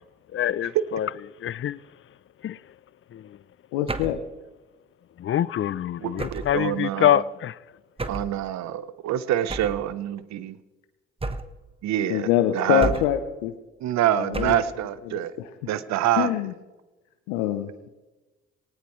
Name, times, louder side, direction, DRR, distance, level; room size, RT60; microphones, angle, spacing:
voice 1, 0.3-1.1 1.4-1.8 2.4-2.6 3.1-3.4 5.2-7.6, left 11 dB, 45° left, 0.6 m, -25 dB
voice 2, 3.7-4.2 12.1-13.5 14.2-14.6 15.1-15.2 16.2-16.5 17.3-17.9, left 11 dB, 85° left, 0.9 m, -24 dB
sound 1, 3.9-4.3 6.2-6.6 8.0-8.4 9.5-9.9 11.2-11.7 12.8-13.3 14.3-14.8, right 2 dB, 20° right, 1.3 m, -31 dB
voice 3, 6.0-7.2 8.1-10.6 11.8-12.9 13.8-15.3 15.7-16.3, right 12 dB, 70° right, 1.0 m, -26 dB
19.0 x 18.5 x 3.2 m
hypercardioid pair, 50°, 29 cm